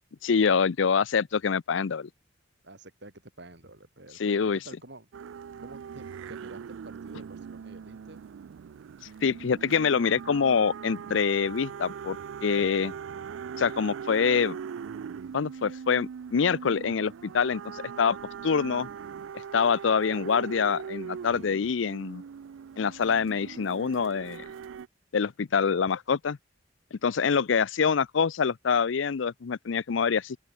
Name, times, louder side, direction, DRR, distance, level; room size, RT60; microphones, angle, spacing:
voice 1, 0.2-2.1 4.2-4.6 9.2-12.9 13.6-14.6 15.3-18.2 18.4-18.9 19.5-22.2 22.8-24.4 25.1-26.4 26.9-30.4, left 6 dB, 75° left, 0.5 m, -25 dB
voice 2, 2.6-4.4 4.6-5.1 5.6-8.2, right 2 dB, 65° right, 5.9 m, -49 dB
sound 1, 5.1-24.9, right 7 dB, 85° right, 0.4 m, -41 dB
open air
head